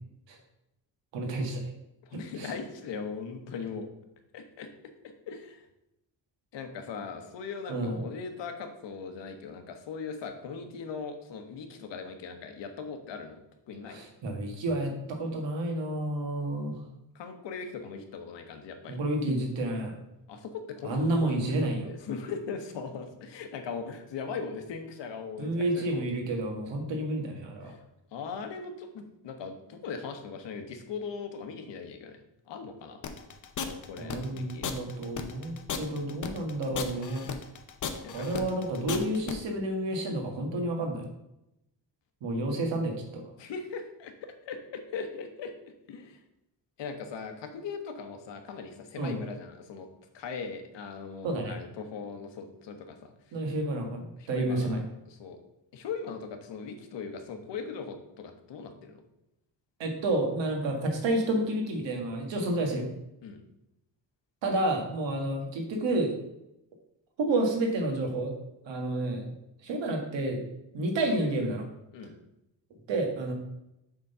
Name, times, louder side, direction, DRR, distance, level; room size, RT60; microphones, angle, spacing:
voice 1, 1.1-1.6 2.1-2.5 7.7-8.0 13.8-16.8 18.9-20.0 20.8-21.9 25.4-27.7 34.0-37.2 38.1-41.1 42.2-43.2 49.0-49.2 51.2-51.6 53.3-54.8 59.8-62.9 64.4-66.1 67.2-68.3 68.7-69.3 69.6-70.4 70.7-71.7 72.9-73.3, right 1 dB, 85° right, 3 dB, 1.7 m, -30 dB
voice 2, 2.1-3.9 4.3-4.7 5.3-5.6 6.5-13.4 13.7-14.0 17.1-19.0 20.3-26.0 27.6-27.8 28.1-32.2 32.5-33.0 33.6-34.7 38.0-38.3 43.4-45.5 45.9-46.2 46.8-49.9 50.1-53.1 54.2-55.4 55.7-59.0 63.2-63.4 71.9-72.1, left 5 dB, 80° left, 6 dB, 1.2 m, -39 dB
sound 1, 33.0-39.3, left 7 dB, 45° left, 0.8 m, -35 dB
7.4 x 3.9 x 5.5 m, 0.86 s
cardioid pair, 140°, 43 cm